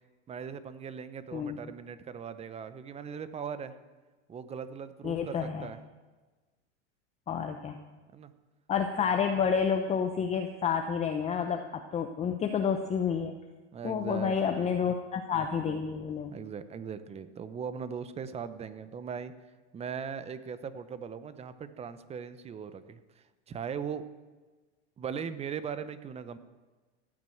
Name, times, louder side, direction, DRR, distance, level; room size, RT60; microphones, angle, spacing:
voice 1, 0.3-3.7 4.3-5.8 8.1-8.3 9.0-9.1 13.7-14.9 16.3-19.3 19.7-24.0 25.0-26.4, right 7 dB, 15° right, 13 dB, 0.7 m, -39 dB
voice 2, 5.0-5.7 7.3-7.8 8.7-13.3 13.8-16.3, left 7 dB, 20° left, 5 dB, 0.8 m, -29 dB
15.0 x 9.7 x 7.9 m, 1.3 s
supercardioid pair, 135°, 36 cm